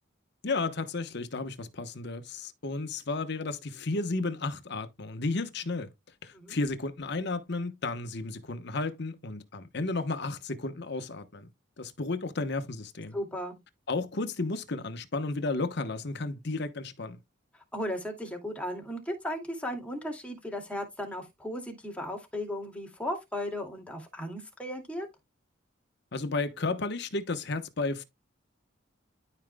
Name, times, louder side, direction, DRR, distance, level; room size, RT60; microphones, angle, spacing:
voice 1, 0.4-5.9 6.2-11.5 11.8-13.2 13.9-17.2 26.1-28.0, left 3 dB, 55° left, 1.0 m, -33 dB
voice 2, 13.1-13.6 17.5-25.1, left 1 dB, 5° left, 2.3 m, -36 dB
13.0 x 5.1 x 2.2 m
head